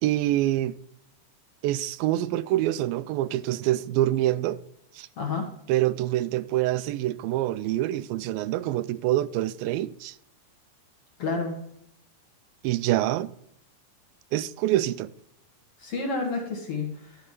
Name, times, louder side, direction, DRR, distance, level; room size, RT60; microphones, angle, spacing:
voice 1, 0.0-0.8 1.6-4.6 4.9-5.1 5.7-10.2 12.6-13.3 14.3-15.1, right 14 dB, 85° right, 2.3 m, -26 dB
voice 2, 5.2-5.5 11.2-11.6 15.8-17.2, left 4 dB, 50° left, 1.9 m, -30 dB
13.0 x 4.5 x 5.8 m
omnidirectional pair, 4.1 m